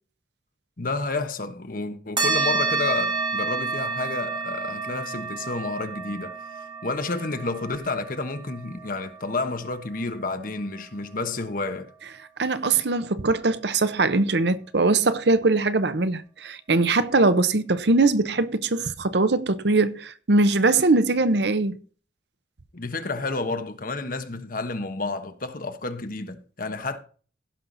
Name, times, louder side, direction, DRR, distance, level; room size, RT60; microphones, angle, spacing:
voice 1, 0.8-11.9 22.7-27.0, left 3 dB, 50° left, 1.2 m, -30 dB
sound 1, 2.2-11.1, right 4 dB, 25° right, 2.6 m, -30 dB
voice 2, 12.4-21.8, right 3 dB, 65° right, 0.8 m, -21 dB
16.0 x 5.8 x 4.0 m
head